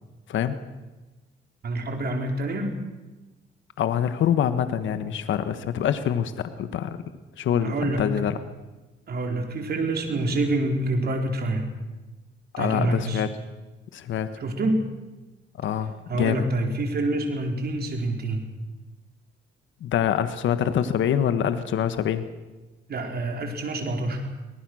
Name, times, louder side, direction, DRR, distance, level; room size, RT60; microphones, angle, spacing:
voice 1, 1.6-2.7 7.6-8.0 9.1-11.7 12.6-13.3 14.4-14.8 16.1-18.5 22.9-24.2, right 2 dB, 50° right, 3 dB, 4.4 m, -27 dB
voice 2, 3.8-7.0 7.4-8.4 12.5-13.3 13.9-14.3 15.6-16.5 19.8-22.2, left 9 dB, 75° left, 11 dB, 1.4 m, -25 dB
24.0 x 19.5 x 6.4 m, 1.1 s
cardioid pair, 90°, 20 cm